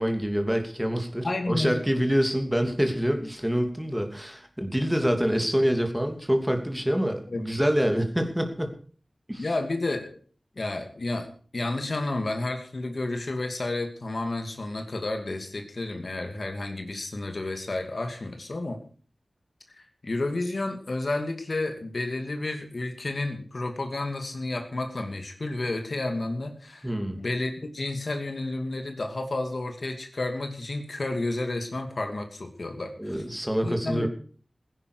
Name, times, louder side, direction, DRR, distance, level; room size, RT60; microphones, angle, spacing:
voice 1, 0.0-8.8 9.3-9.5 26.8-27.2 33.0-34.1, equal, 5° right, 5 dB, 2.9 m, -26 dB
voice 2, 1.2-1.8 7.3-7.4 9.4-10.2 10.6-18.8 19.7-26.9 27.2-33.2 33.6-34.1, left 2 dB, 60° left, 5 dB, 2.5 m, -31 dB
16.0 x 10.5 x 6.8 m, 0.43 s
wide cardioid pair, 60°, 0 cm